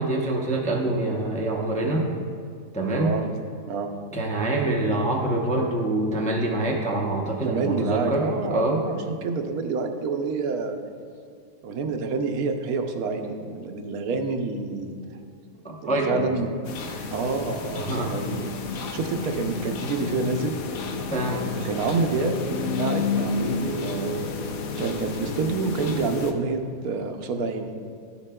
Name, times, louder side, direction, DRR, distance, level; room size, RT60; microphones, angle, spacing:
voice 1, 0.0-2.1 2.7-3.2 4.1-8.8 15.6-16.3 16.9-17.1 17.7-18.1 21.1-21.4, right 2 dB, 10° left, -2 dB, 0.3 m, -25 dB
voice 2, 2.9-3.3 3.7-3.9 7.4-10.8 11.6-15.0 15.8-16.6 17.1-20.5 21.3-22.4 22.8-24.2 24.8-27.7, right 4 dB, 90° right, 5 dB, 1.1 m, -28 dB
sound 1, 16.6-26.3, left 4 dB, 80° left, 1.1 m, -31 dB
11.0 x 7.1 x 2.2 m, 2.3 s
omnidirectional pair, 1.5 m